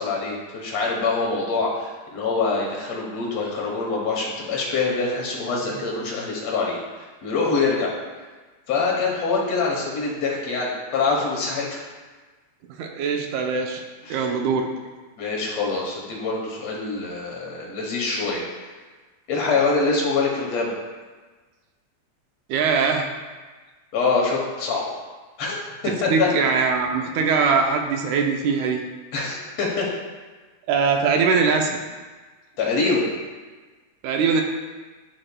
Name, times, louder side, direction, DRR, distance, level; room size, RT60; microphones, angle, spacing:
voice 1, 0.0-7.9 8.7-11.8 14.0-14.2 15.2-18.5 19.3-20.7 23.9-25.0 25.4-25.6 26.0-26.3 29.1-29.9 32.6-33.0, left 4 dB, 65° left, -2 dB, 2.1 m, -25 dB
voice 2, 12.8-13.8 14.1-14.7 22.5-23.1 26.1-28.8 30.7-31.7 34.0-34.4, right 5 dB, 90° right, 3 dB, 2.1 m, -21 dB
11.0 x 4.4 x 2.2 m, 1.3 s
omnidirectional pair, 3.4 m